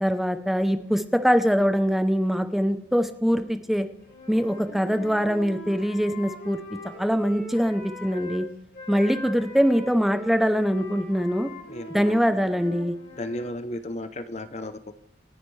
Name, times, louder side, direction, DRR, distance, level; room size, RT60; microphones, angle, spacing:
voice 1, 0.0-3.9 4.3-6.6 7.0-8.5 8.9-11.5 11.9-12.9, equal, ahead, 8 dB, 0.6 m, -23 dB
Wind instrument woodwind instrument, 4.0-8.4 8.7-13.6, left 1 dB, 75° left, 4.7 m, -41 dB
voice 2, 11.7-12.2 13.1-15.0, left 1 dB, 35° left, 11 dB, 0.7 m, -34 dB
27.0 x 9.9 x 3.2 m, 0.78 s
head